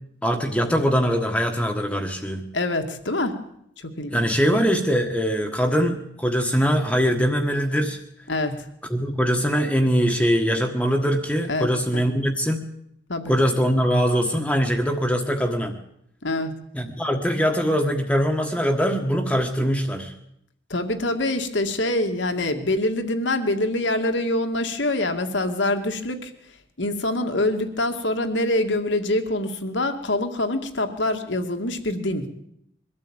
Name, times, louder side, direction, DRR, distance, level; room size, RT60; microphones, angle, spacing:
voice 1, 0.2-2.4 4.1-8.0 8.9-12.6 13.3-15.7 16.7-20.1, equal, 5° left, 3 dB, 1.4 m, -22 dB
voice 2, 2.5-3.4 3.8-4.4 8.3-8.5 11.5-12.0 13.1-13.3 16.2-16.5 20.7-26.3 26.8-32.3, left 1 dB, 75° left, 6 dB, 2.2 m, -25 dB
23.0 x 13.0 x 8.9 m, 0.76 s
head